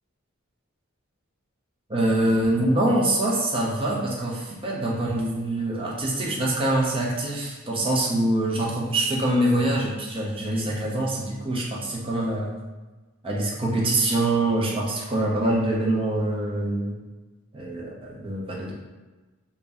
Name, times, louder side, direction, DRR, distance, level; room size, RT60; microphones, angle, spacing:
voice 1, 1.9-12.5 13.2-17.0 17.5-18.7, right 1 dB, 25° right, -3 dB, 0.5 m, -24 dB
2.5 x 2.1 x 3.3 m, 1.2 s
head